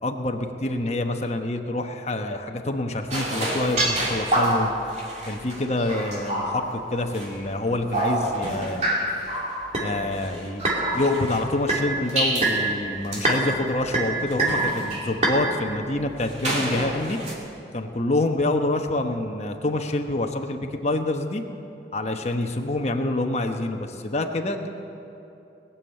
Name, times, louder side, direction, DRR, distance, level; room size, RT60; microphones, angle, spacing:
voice 1, 0.0-4.7 5.3-8.9 9.8-10.6 10.9-17.2 17.7-21.4 21.9-24.7, left 2 dB, 40° left, 4 dB, 1.0 m, -26 dB
sound 1, 3.1-7.4 7.8-11.4 11.7-12.7 13.0-13.4 13.8-15.4 16.2-17.3, right 1 dB, 40° right, 2.6 m, -26 dB
20.0 x 7.2 x 8.7 m, 2.9 s
head